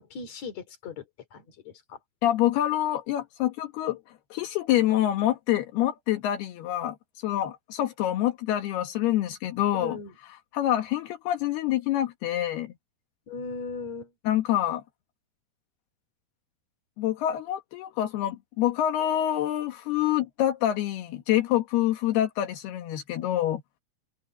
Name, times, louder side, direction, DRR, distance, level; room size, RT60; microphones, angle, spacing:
voice 1, 0.0-2.0 9.7-10.1 13.3-14.1 22.1-22.2, left 4 dB, 45° left, 4.4 m, -38 dB
voice 2, 2.2-4.0 4.3-10.0 10.5-12.7 14.3-14.8 17.0-23.6, left 12 dB, 80° left, 3.4 m, -26 dB
open air
omnidirectional pair, 4.6 m